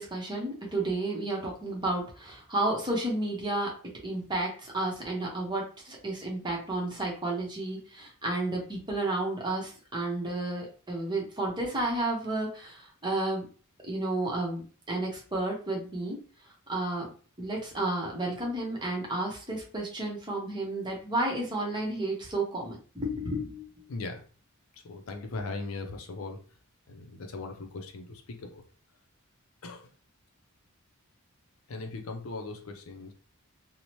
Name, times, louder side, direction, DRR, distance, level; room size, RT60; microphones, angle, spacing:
voice 1, 0.0-3.7 4.0-13.5 13.8-16.2 16.7-17.1 17.4-23.7, right 2 dB, 20° right, -2 dB, 0.8 m, -32 dB
voice 2, 23.9-24.2 24.7-26.4 26.9-28.6 29.6-29.9 31.7-33.1, left 3 dB, 70° left, 4 dB, 0.5 m, -39 dB
2.8 x 2.0 x 3.0 m, 0.39 s
head